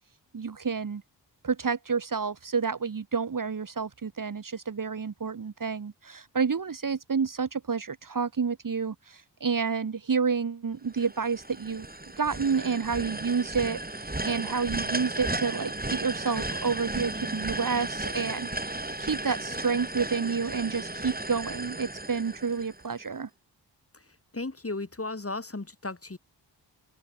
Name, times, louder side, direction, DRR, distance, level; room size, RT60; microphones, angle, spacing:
voice 1, 0.3-1.0 1.4-11.9 12.2-23.3, right 5 dB, 45° right, 1.3 m, -29 dB
sound 1, 10.9-23.0, right 2 dB, 20° right, 5.6 m, -35 dB
voice 2, 24.3-26.2, left 2 dB, 30° left, 4.1 m, -35 dB
cardioid pair, 50°, 44 cm